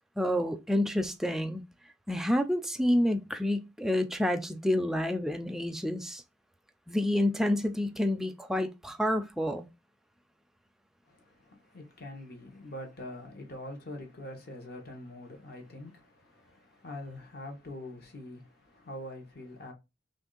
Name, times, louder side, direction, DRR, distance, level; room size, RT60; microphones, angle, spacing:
voice 1, 0.2-1.6 2.1-6.2 6.9-9.7, left 1 dB, ahead, 0.3 m, -28 dB
voice 2, 11.0-19.7, left 1 dB, 50° left, 0.9 m, -44 dB
3.1 x 2.6 x 3.7 m
head